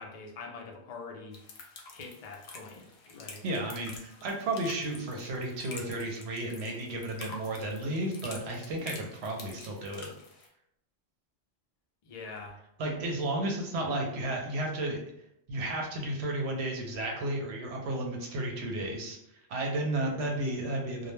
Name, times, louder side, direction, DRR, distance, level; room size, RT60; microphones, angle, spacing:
voice 1, 0.0-1.4 1.9-3.5 12.0-12.6, left 4 dB, 50° left, 1 dB, 0.4 m, -44 dB
sound 1, 1.3-10.5, left 3 dB, 75° left, 0.8 m, -48 dB
voice 2, 3.4-10.1 12.8-15.0 15.5-19.2 19.5-21.1, right 1 dB, 75° right, 0 dB, 0.8 m, -33 dB
2.2 x 2.1 x 3.0 m, 0.77 s
omnidirectional pair, 1.1 m